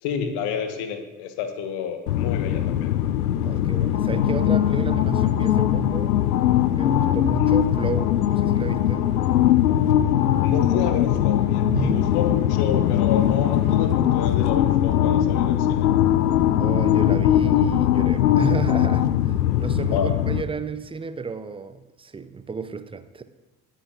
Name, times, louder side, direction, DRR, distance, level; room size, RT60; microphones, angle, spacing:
voice 1, 0.0-2.9 7.4-7.5 10.4-15.9 19.9-20.1, left 7 dB, 55° left, 7 dB, 1.3 m, -29 dB
sound 1, 2.1-20.4, left 11 dB, 80° left, 0.6 m, -20 dB
voice 2, 3.4-6.2 6.7-9.0 11.7-12.1 16.6-23.2, right 5 dB, 10° right, 12 dB, 0.5 m, -32 dB
20.0 x 9.1 x 2.4 m, 1.1 s
figure-of-eight pair, 50°, 47 cm